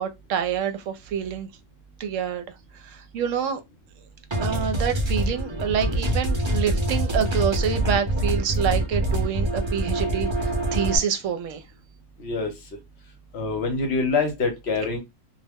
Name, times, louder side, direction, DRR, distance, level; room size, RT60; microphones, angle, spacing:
voice 1, 0.0-1.5 2.0-2.4 2.8-3.6 4.4-11.6, right 8 dB, 75° right, 0.9 m, -27 dB
sound 1, 4.3-11.0, right 1 dB, 30° right, 0.6 m, -25 dB
voice 2, 12.2-12.5 13.3-15.0, left 4 dB, 60° left, 0.9 m, -25 dB
2.4 x 2.0 x 3.4 m
omnidirectional pair, 1.4 m